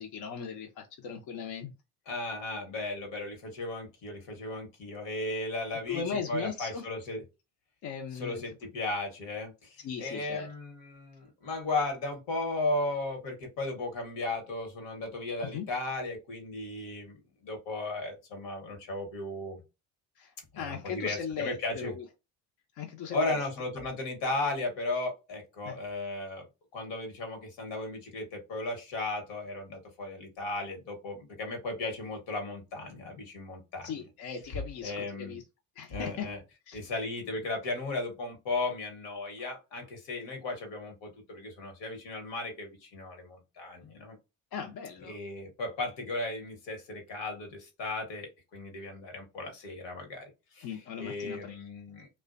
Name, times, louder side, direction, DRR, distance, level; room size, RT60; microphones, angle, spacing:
voice 1, 0.0-1.7 5.9-6.8 7.8-8.4 9.8-10.5 15.5-15.7 20.2-22.0 22.8-23.4 25.7-25.8 33.8-35.4 35.8-36.3 36.7-36.8 44.5-45.2 50.6-51.6, left 6 dB, 55° left, 0.6 m, -38 dB
voice 2, 2.1-7.2 8.1-19.6 20.5-21.9 23.1-26.5 26.7-34.1 34.8-35.4 35.9-36.4 36.7-44.2 45.0-52.1, left 2 dB, 75° left, 1.1 m, -36 dB
2.4 x 2.1 x 2.4 m
supercardioid pair, 75°, 44 cm